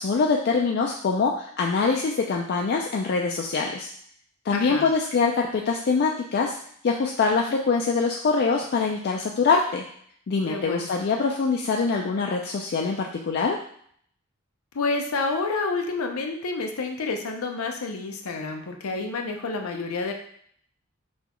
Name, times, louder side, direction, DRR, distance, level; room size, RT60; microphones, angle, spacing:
voice 1, 0.0-3.9 4.4-6.6 6.8-9.8 10.3-13.6, left 4 dB, 50° left, 0 dB, 0.4 m, -24 dB
voice 2, 4.5-4.9 10.5-10.9 14.7-20.1, left 3 dB, 90° left, 3 dB, 0.6 m, -29 dB
6.1 x 2.3 x 2.9 m, 0.63 s
head